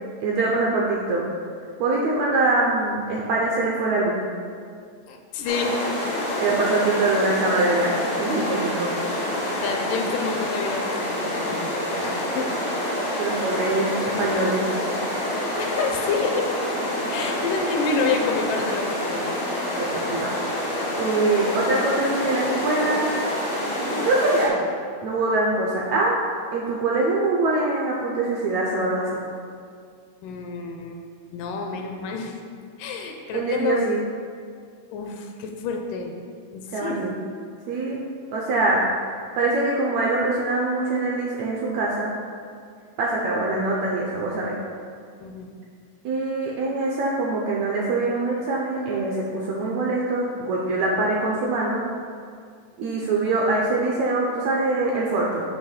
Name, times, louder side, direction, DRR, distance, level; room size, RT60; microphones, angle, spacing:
voice 1, 0.2-1.2 1.8-4.2 6.4-8.9 13.2-14.7 19.7-20.3 21.0-23.1 23.8-24.5 25.0-26.2 26.5-29.2 33.3-34.0 36.7-37.1 37.7-38.0 38.3-38.8 39.3-42.1 43.0-44.5 46.0-51.8 52.8-55.4, right 2 dB, 75° right, -3 dB, 1.6 m, -23 dB
voice 2, 5.1-5.8 9.6-12.5 15.6-16.5 17.1-19.3 30.2-31.0 31.3-32.4 32.8-33.8 34.9-36.1 36.5-37.1 45.2-45.5, left 4 dB, 80° left, 3 dB, 2.1 m, -28 dB
sound 1, 5.4-24.5, left 1 dB, 60° left, 0.8 m, -27 dB
8.7 x 3.0 x 5.7 m, 2.2 s
omnidirectional pair, 3.9 m